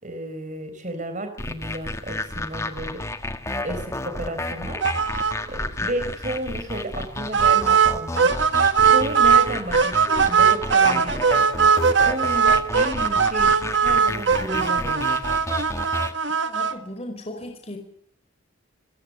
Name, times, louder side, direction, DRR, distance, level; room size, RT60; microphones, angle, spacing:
voice 1, 0.0-3.0 3.6-5.0 5.5-8.4 8.8-11.2 12.0-15.3, right 1 dB, 40° right, 8 dB, 4.2 m, -32 dB
sound 1, 1.4-16.1, left 1 dB, 15° left, 1.6 m, -32 dB
sound 2, 4.8-5.3 5.6-5.7 6.1-6.2 7.3-9.5 9.7-16.7, right 6 dB, 65° right, 1.7 m, -19 dB
voice 2, 16.4-17.8, left 1 dB, 30° left, 4 dB, 5.0 m, -36 dB
29.5 x 16.5 x 9.5 m, 0.65 s
head